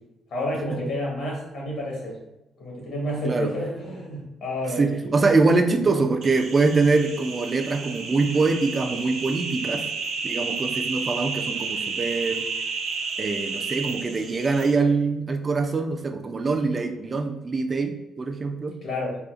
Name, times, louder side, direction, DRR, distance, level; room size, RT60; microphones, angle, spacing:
voice 1, 0.3-2.2 2.6-5.1 18.8-19.2, left 1 dB, 70° left, -3 dB, 1.3 m, -30 dB
voice 2, 4.8-9.8 10.2-12.4 13.2-18.8, right 3 dB, 35° right, 6 dB, 0.3 m, -23 dB
sound 1, 6.2-14.7, right 4 dB, 80° right, 0.6 m, -31 dB
3.8 x 2.3 x 2.4 m, 0.95 s
cardioid pair, 90°, 0 cm